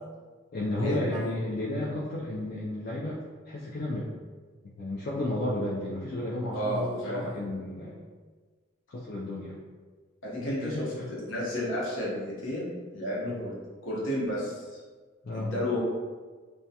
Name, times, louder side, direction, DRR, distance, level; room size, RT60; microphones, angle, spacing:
voice 1, 0.5-3.2 3.5-4.1 4.8-8.0 8.9-9.6 10.4-11.1 15.2-15.5, left 1 dB, 50° left, -6 dB, 0.4 m, -32 dB
voice 2, 6.5-7.2 10.2-12.7 12.9-13.5 13.8-14.8 15.3-15.8, equal, 80° left, -6 dB, 0.8 m, -32 dB
2.3 x 2.1 x 2.7 m, 1.4 s
head